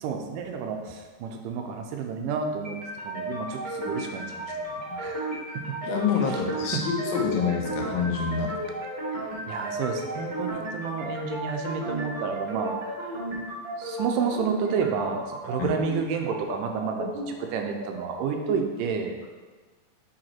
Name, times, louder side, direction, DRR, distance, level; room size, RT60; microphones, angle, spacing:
voice 1, 0.0-2.8 3.0-5.8 6.7-6.8 9.1-13.2 13.8-19.2, right 6 dB, 80° right, 3 dB, 2.2 m, -31 dB
sound 1, 2.6-18.6, right 1 dB, 40° right, 0.6 m, -34 dB
voice 2, 5.8-8.6 15.6-15.7, left 6 dB, 90° left, 0 dB, 2.7 m, -27 dB
7.8 x 4.0 x 4.4 m, 1.3 s
omnidirectional pair, 4.0 m